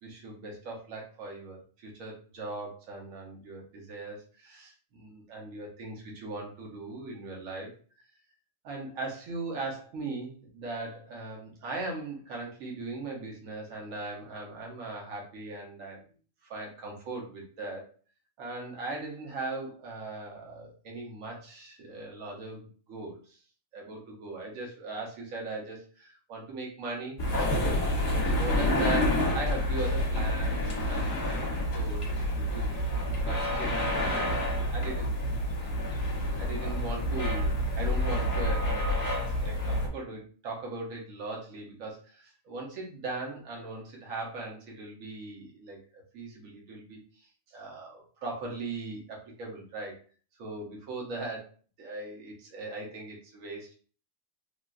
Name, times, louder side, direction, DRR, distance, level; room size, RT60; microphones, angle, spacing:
voice 1, 0.0-7.7 8.6-16.0 16.5-17.9 18.4-23.4 23.7-27.7 28.2-32.7 33.2-34.5 34.7-35.1 36.4-39.1 39.4-50.0 50.4-51.5 51.8-53.7, right 3 dB, 65° right, -1 dB, 1.2 m, -39 dB
sound 1, 27.2-39.9, left 1 dB, 50° left, 1.1 m, -28 dB
3.8 x 2.3 x 2.4 m, 0.41 s
omnidirectional pair, 1.5 m